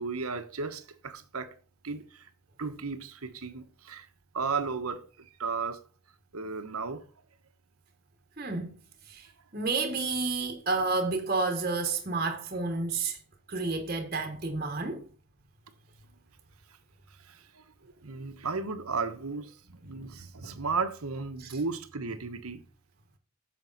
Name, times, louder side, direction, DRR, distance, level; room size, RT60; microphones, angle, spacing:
voice 1, 0.0-1.5 1.8-2.3 2.6-4.1 4.3-5.8 6.3-7.0 17.2-22.6, right 4 dB, 90° right, 1.2 m, -35 dB
voice 2, 8.4-8.8 9.1-9.3 9.5-13.2 13.5-15.1 21.4-21.6, right 3 dB, 40° right, 1.2 m, -30 dB
8.9 x 7.0 x 4.0 m
head